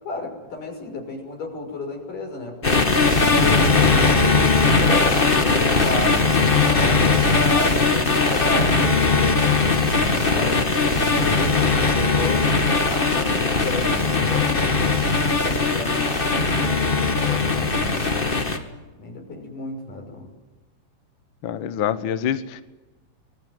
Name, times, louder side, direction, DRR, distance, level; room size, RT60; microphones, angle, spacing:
voice 1, 0.0-2.8 3.1-4.2 4.8-9.8 10.2-14.7 15.4-16.3 16.6-18.3 19.0-20.3, left 3 dB, 65° left, 2 dB, 7.6 m, -32 dB
sound 1, 2.6-18.6, left 4 dB, 25° left, 1.3 m, -19 dB
voice 2, 21.4-22.6, left 9 dB, 90° left, 12 dB, 1.0 m, -25 dB
24.5 x 21.5 x 9.6 m, 1.1 s
omnidirectional pair, 4.1 m